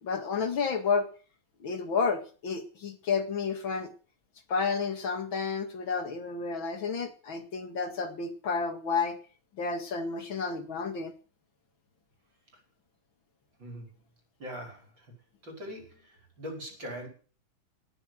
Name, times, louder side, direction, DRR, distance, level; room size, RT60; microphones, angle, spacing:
voice 1, 0.0-1.1 1.6-3.9 4.5-9.2 9.6-11.1, left 5 dB, 65° left, 7 dB, 2.7 m, -31 dB
voice 2, 14.4-15.1 15.4-17.1, equal, 60° right, 3 dB, 5.9 m, -41 dB
19.0 x 7.1 x 7.7 m, 0.39 s
omnidirectional pair, 2.3 m